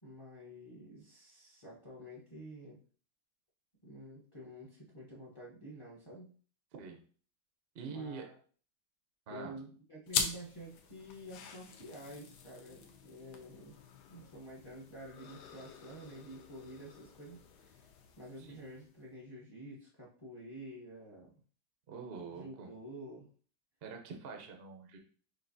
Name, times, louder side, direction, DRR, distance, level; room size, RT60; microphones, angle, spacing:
voice 1, 0.0-2.8 3.8-6.3 7.9-8.4 9.3-13.8 14.1-17.9 18.2-21.3 22.3-23.3, right 1 dB, 30° left, -4 dB, 0.6 m, -49 dB
voice 2, 7.7-8.2 9.3-9.5 18.4-18.6 21.9-22.7 23.8-25.0, right 5 dB, 70° right, 3 dB, 0.5 m, -45 dB
sound 1, 10.1-19.0, left 6 dB, 75° left, 1.1 m, -43 dB
6.5 x 2.6 x 2.6 m, 0.43 s
omnidirectional pair, 2.0 m